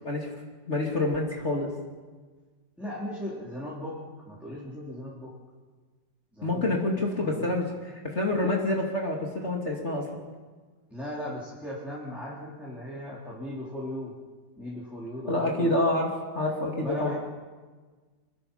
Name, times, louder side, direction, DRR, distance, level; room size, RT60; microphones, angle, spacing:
voice 1, 0.0-0.3 0.7-1.7 6.4-10.1 15.3-17.1, left 2 dB, 35° left, -1 dB, 3.0 m, -27 dB
voice 2, 2.8-4.0 4.2-5.3 6.3-7.6 10.9-14.1 14.6-15.8 16.8-17.2, left 1 dB, ahead, -7 dB, 3.8 m, -38 dB
26.5 x 21.5 x 5.7 m, 1.4 s
omnidirectional pair, 2.0 m